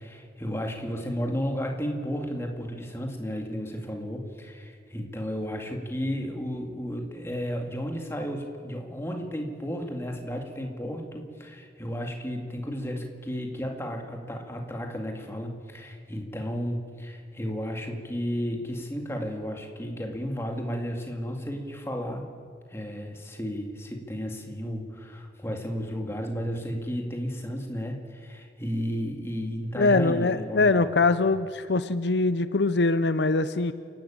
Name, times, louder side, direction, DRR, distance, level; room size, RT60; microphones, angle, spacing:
voice 1, 0.0-22.2 22.7-30.8, equal, 15° left, 2 dB, 2.2 m, -33 dB
voice 2, 29.8-33.7, left 3 dB, 75° left, 13 dB, 0.7 m, -23 dB
28.5 x 12.0 x 8.8 m, 2.5 s
head